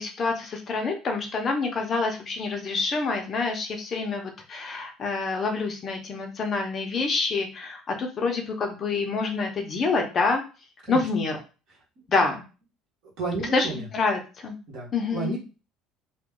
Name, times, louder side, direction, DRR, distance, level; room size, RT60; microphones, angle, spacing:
voice 1, 0.0-10.4 10.9-11.4 12.1-12.4 13.5-14.6 14.9-15.4, left 4 dB, 30° left, 4 dB, 0.6 m, -27 dB
voice 2, 13.2-13.8 14.7-15.4, right 3 dB, 55° right, -3 dB, 1.4 m, -31 dB
3.0 x 2.2 x 3.6 m, 0.33 s
cardioid pair, 150°, 0 cm